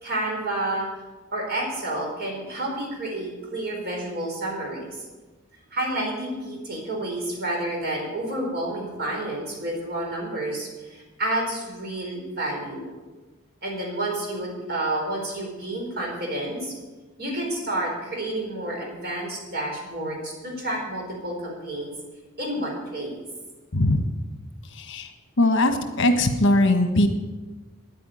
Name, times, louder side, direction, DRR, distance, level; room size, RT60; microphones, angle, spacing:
voice 1, 0.0-0.9 1.3-5.0 5.7-12.9 13.6-16.7 17.2-21.9 22.4-23.2, right 1 dB, 50° right, -1 dB, 4.5 m, -30 dB
voice 2, 24.8-25.1 25.4-27.1, left 1 dB, 60° left, 7 dB, 1.3 m, -20 dB
9.9 x 9.2 x 9.1 m, 1.2 s
head